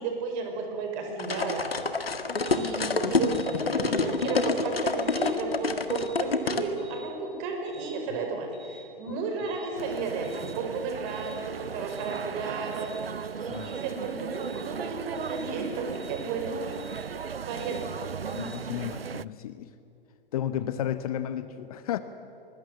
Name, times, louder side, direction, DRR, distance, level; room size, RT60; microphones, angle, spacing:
voice 1, 0.0-1.7 2.4-12.9 13.6-16.8 17.4-18.0, right 4 dB, 30° right, 4 dB, 4.9 m, -33 dB
sound 1, 1.2-6.7, left 4 dB, 75° left, 1.9 m, -27 dB
sound 2, 2.4-2.6 3.2-3.5 4.1-4.4 5.0-5.3 5.9-6.2 6.8-7.1 7.7-7.9 8.5-8.8 9.4-9.7 10.2-10.5 11.1-11.3 11.9-12.2 12.7-13.0 13.5-13.8 14.3-14.6 15.1-15.4 15.9-16.2 16.7-17.0 17.5-17.8 18.3-18.6, right 3 dB, 15° left, 4.8 m, -50 dB
sound 3, 9.8-19.2, right 6 dB, 75° right, 0.7 m, -37 dB
voice 2, 18.3-19.7 20.3-22.0, left 11 dB, 40° left, 12 dB, 1.0 m, -33 dB
25.0 x 20.5 x 7.5 m, 2.9 s
figure-of-eight pair, 120°, 30 cm